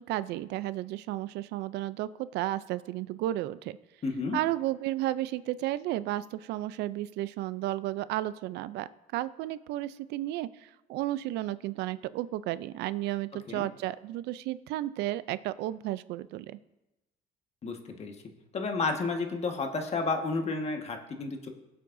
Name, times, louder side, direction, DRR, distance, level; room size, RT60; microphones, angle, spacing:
voice 1, 0.0-3.8 4.3-16.6, right 15 dB, 85° right, 16 dB, 0.5 m, -33 dB
voice 2, 4.0-4.4 13.5-13.7 17.6-18.1 18.5-21.5, left 3 dB, 40° left, 4 dB, 1.5 m, -31 dB
20.5 x 7.7 x 2.7 m, 0.99 s
cardioid pair, 110°, 17 cm